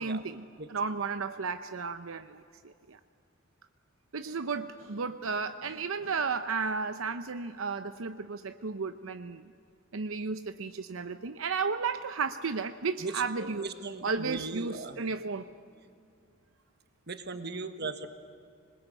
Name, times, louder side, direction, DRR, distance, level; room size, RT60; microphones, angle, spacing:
voice 1, 0.0-0.4 0.7-3.0 4.1-9.4 9.9-13.7 14.0-15.4, right 4 dB, 85° right, 9 dB, 0.7 m, -33 dB
voice 2, 13.0-15.1 17.1-18.1, right 3 dB, 55° right, 8 dB, 1.5 m, -38 dB
26.5 x 21.0 x 8.3 m, 2.4 s
head